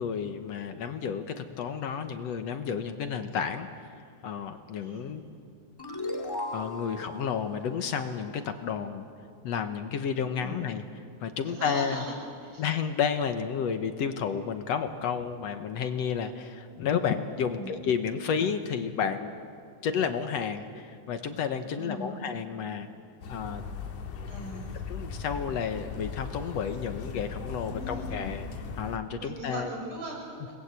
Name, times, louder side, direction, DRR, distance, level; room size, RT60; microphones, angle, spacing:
voice 1, 0.0-3.9 4.2-5.2 6.5-9.0 9.4-12.0 12.6-19.3 19.8-22.9 23.3-23.6 24.9-28.5 28.8-29.7, left 7 dB, 65° left, 8 dB, 2.1 m, -31 dB
sound 1, 5.8-9.0, left 1 dB, 10° left, 1.8 m, -38 dB
voice 2, 11.4-12.1 12.4-12.6 17.4-17.7 21.6-22.5 24.3-24.8 27.6-28.3 29.2-30.5, right 1 dB, 80° right, -1 dB, 7.7 m, -39 dB
sound 2, 23.2-29.0, left 5 dB, 85° left, 3.2 m, -38 dB
29.5 x 20.5 x 8.2 m, 2.3 s
omnidirectional pair, 3.5 m